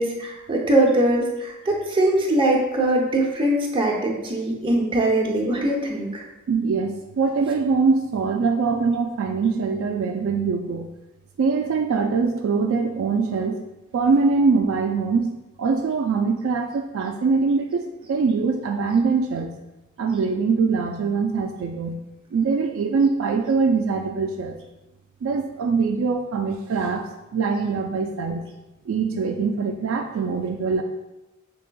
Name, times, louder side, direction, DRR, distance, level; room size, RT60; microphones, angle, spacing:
voice 1, 0.0-6.2, right 1 dB, 25° right, -2 dB, 0.7 m, -21 dB
voice 2, 6.5-10.9 11.4-13.6 13.9-15.3 15.6-19.6 20.0-22.0 22.3-24.6 25.2-28.4 28.9-30.8, right 4 dB, 70° right, 4 dB, 0.3 m, -23 dB
5.0 x 3.4 x 2.2 m, 0.99 s
head